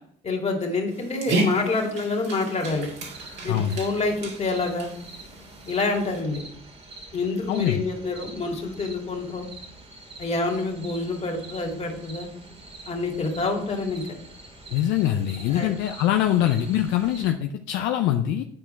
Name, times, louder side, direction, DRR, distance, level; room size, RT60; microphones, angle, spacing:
voice 1, 0.2-2.9 3.4-4.9 5.7-6.4 7.1-9.5 10.2-12.3 12.9-14.1 15.5-15.7, left 3 dB, 35° left, 1 dB, 2.4 m, -27 dB
Dog, 0.9-6.2, right 1 dB, 60° right, 2.1 m, -32 dB
sound 1, 2.6-17.3, right 2 dB, 30° right, 2.1 m, -45 dB
voice 2, 3.5-3.9 7.5-7.8 14.7-18.4, left 11 dB, 70° left, 6 dB, 0.5 m, -23 dB
9.7 x 4.3 x 4.4 m, 0.67 s
hypercardioid pair, 65°, 20 cm